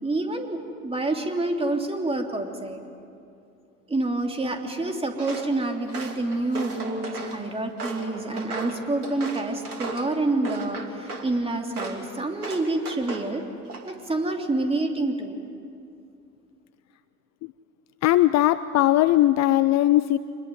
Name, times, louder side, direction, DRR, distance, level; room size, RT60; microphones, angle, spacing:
voice 1, 0.0-2.8 3.9-13.4 13.9-15.4, right 2 dB, 15° right, 3 dB, 3.1 m, -27 dB
Walk footsteps, 5.2-5.5 5.9-7.4 7.8-10.1 10.4-11.3 11.7-12.0 12.4-13.3 13.7-14.1, right 3 dB, 85° right, 2.9 m, -35 dB
voice 2, 18.0-20.2, left 14 dB, 35° left, 14 dB, 0.7 m, -19 dB
26.0 x 21.5 x 9.4 m, 2.5 s
figure-of-eight pair, 75°, 44 cm